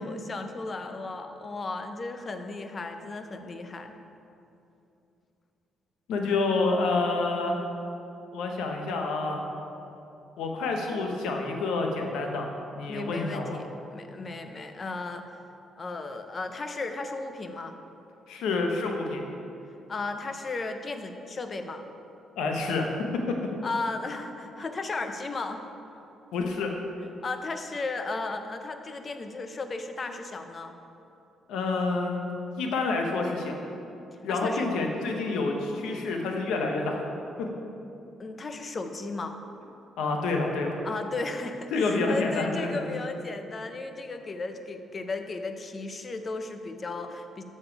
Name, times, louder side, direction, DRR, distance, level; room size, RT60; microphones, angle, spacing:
voice 1, 0.0-3.9 12.9-15.3 15.8-17.8 19.9-21.8 23.6-25.6 27.2-30.7 34.3-34.7 38.2-39.3 40.8-47.4, left 3 dB, 35° left, 7 dB, 0.6 m, -35 dB
voice 2, 6.1-7.6 8.3-9.4 10.4-13.6 18.3-19.2 22.4-23.3 26.3-26.7 31.5-32.3 32.6-33.5 34.2-37.0 37.4-37.5 40.0-40.8 41.7-42.9, left 3 dB, 85° left, 2 dB, 0.9 m, -28 dB
6.8 x 5.4 x 4.7 m, 2.8 s
cardioid pair, 90°, 0 cm